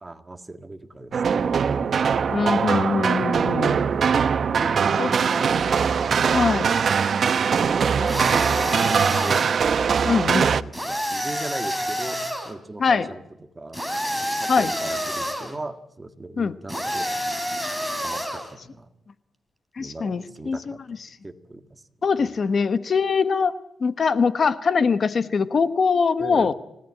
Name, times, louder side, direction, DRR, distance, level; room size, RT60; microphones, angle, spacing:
voice 1, 0.0-2.0 4.5-5.6 6.1-6.7 7.6-9.4 10.2-12.2 12.4-13.8 14.4-17.4 18.0-18.9 19.8-21.8 22.2-22.3 26.2-26.5, right 2 dB, 15° right, 8 dB, 1.8 m, -37 dB
sound 1, 1.1-10.6, right 6 dB, 50° right, 0.9 m, -21 dB
voice 2, 2.3-3.8 5.0-5.1 5.6-5.8 6.3-6.7 10.0-10.5 12.8-13.1 14.5-14.7 16.4-16.5 19.8-20.7 22.0-23.5 23.8-26.5, left 5 dB, 40° left, 12 dB, 1.1 m, -22 dB
sound 2, 8.1-9.6 10.7-12.5 13.7-15.5 16.7-18.5, equal, 5° left, 3.4 m, -28 dB
29.5 x 18.0 x 8.8 m, 0.89 s
wide cardioid pair, 140°, 0 cm